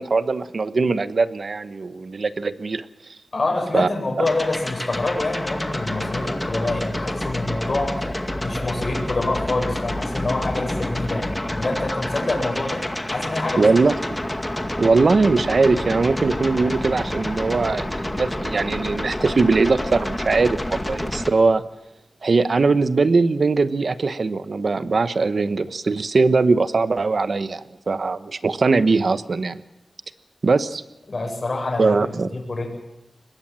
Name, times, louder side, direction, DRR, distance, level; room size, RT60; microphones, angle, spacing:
voice 1, 0.0-3.2 3.7-3.9 13.6-14.2 14.8-21.6 22.2-29.6 30.4-30.8 31.8-32.3, right 4 dB, 65° right, 12 dB, 1.1 m, -20 dB
voice 2, 3.3-12.8 13.1-13.7 31.1-32.0 32.5-32.7, left 2 dB, 50° left, 0 dB, 7.6 m, -26 dB
sound 1, 4.2-21.3, left 1 dB, 15° left, 2.2 m, -28 dB
24.5 x 21.0 x 7.6 m, 0.91 s
wide cardioid pair, 100°, 0 cm